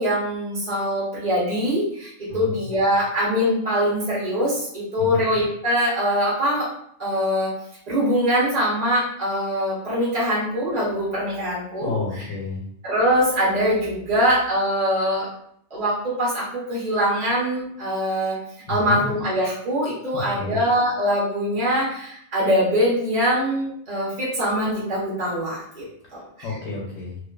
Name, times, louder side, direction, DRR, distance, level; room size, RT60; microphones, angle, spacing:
voice 1, 0.0-6.7 7.0-7.5 7.9-12.3 12.8-15.3 15.7-18.4 18.7-25.9 26.1-26.2, equal, 45° right, -7 dB, 0.6 m, -23 dB
voice 2, 11.8-12.6 18.7-19.0 20.1-20.6 26.0-26.1 26.4-27.2, left 4 dB, 70° left, -4 dB, 0.9 m, -30 dB
2.5 x 2.3 x 2.2 m, 0.69 s
omnidirectional pair, 1.6 m